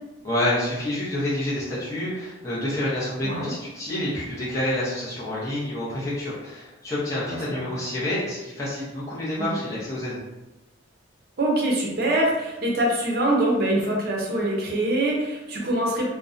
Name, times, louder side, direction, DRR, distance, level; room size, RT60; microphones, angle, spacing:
voice 1, 0.2-10.2, left 1 dB, 15° left, -9 dB, 0.6 m, -28 dB
voice 2, 3.2-3.5 7.3-7.6 9.4-9.6 11.4-16.1, right 1 dB, 50° right, -2 dB, 0.6 m, -24 dB
2.5 x 2.1 x 2.4 m, 1.0 s
head